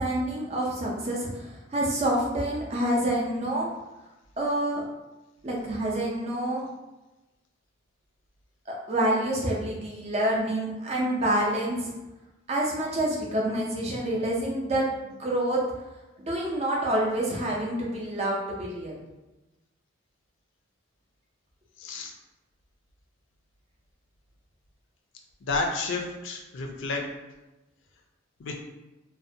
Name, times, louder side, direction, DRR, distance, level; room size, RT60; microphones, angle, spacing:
voice 1, 0.0-3.7 4.4-4.8 5.4-6.7 8.7-11.9 12.5-15.6 16.2-18.9, right 1 dB, 30° right, -2 dB, 0.4 m, -27 dB
voice 2, 21.8-22.1 25.4-27.0 28.4-28.6, left 3 dB, 65° left, 2 dB, 0.4 m, -31 dB
2.5 x 2.1 x 2.6 m, 1.1 s
head